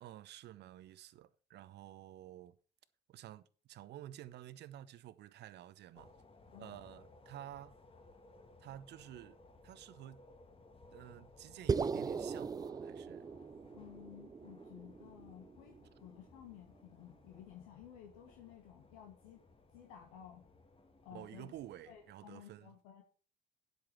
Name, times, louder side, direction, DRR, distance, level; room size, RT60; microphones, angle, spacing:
voice 1, 0.0-2.6 3.1-6.1 6.6-7.8 8.6-9.4 9.6-10.3 10.9-13.3 21.1-22.7, right 12 dB, 55° right, 0.8 m, -51 dB
sound 1, 5.9-22.1, left 2 dB, 25° left, 1.6 m, -61 dB
sound 2, 11.7-16.1, right 5 dB, 20° right, 0.4 m, -39 dB
voice 2, 13.7-19.4 19.7-20.4 21.0-21.5 21.9-23.0, left 10 dB, 70° left, 1.4 m, -55 dB
9.6 x 8.0 x 4.5 m
figure-of-eight pair, 55°, 21 cm